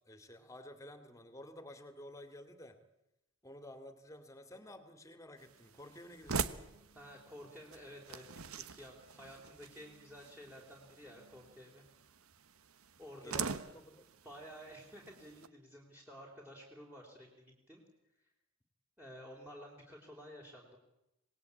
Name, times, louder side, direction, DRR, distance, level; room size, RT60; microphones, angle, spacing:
voice 1, 0.0-2.8 3.4-6.7 13.2-14.1, left 1 dB, 15° left, 9 dB, 2.5 m, -52 dB
sound 1, 5.4-15.5, right 6 dB, 80° right, 1.2 m, -44 dB
voice 2, 7.0-11.8 13.0-13.6 14.2-17.8 19.0-20.8, equal, 10° right, -1 dB, 4.0 m, -52 dB
26.5 x 19.5 x 8.6 m, 0.89 s
head